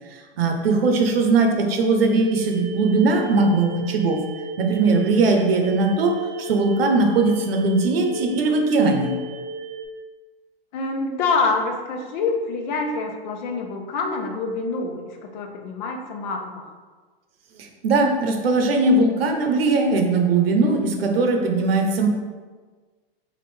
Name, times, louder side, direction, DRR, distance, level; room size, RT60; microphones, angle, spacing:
voice 1, 0.1-4.2 4.6-9.1 17.6-22.1, right 3 dB, 80° right, 3 dB, 0.8 m, -20 dB
sound 1, 2.1-9.9, right 1 dB, 30° right, 0.5 m, -35 dB
voice 2, 10.7-16.7, left 3 dB, 50° left, 3 dB, 0.7 m, -26 dB
3.4 x 2.4 x 4.4 m, 1.4 s
hypercardioid pair, 120°, 29 cm